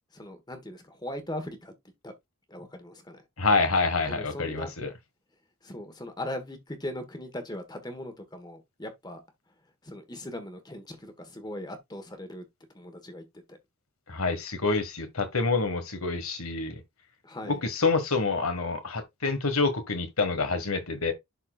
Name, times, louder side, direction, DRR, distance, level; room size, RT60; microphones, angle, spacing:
voice 1, 0.1-1.7 2.0-2.1 2.5-3.2 4.1-4.7 5.6-9.2 9.8-12.4 12.7-13.6 17.2-17.6, left 1 dB, 20° left, 1.4 m, -39 dB
voice 2, 3.4-4.9 14.1-16.8 17.5-21.1, left 3 dB, 85° left, 1.6 m, -27 dB
11.0 x 4.3 x 2.4 m
head